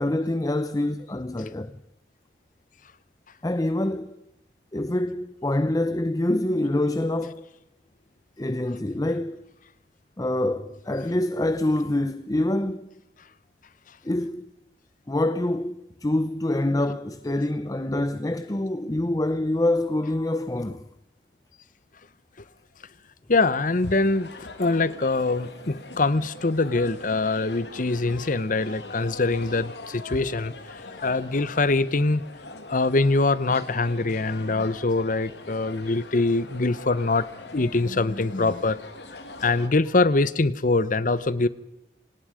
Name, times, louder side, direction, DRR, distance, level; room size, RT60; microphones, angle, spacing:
voice 1, 0.0-1.8 3.4-4.2 4.7-7.4 8.4-9.4 10.2-12.9 14.0-14.4 15.1-20.8, left 1 dB, 20° left, 0.7 m, -26 dB
voice 2, 23.3-30.5 31.0-32.2 32.7-38.8 39.4-41.5, left 3 dB, 50° left, 0.9 m, -23 dB
sound 1, 23.6-39.7, left 2 dB, 75° left, 2.5 m, -42 dB
27.0 x 19.0 x 5.1 m
head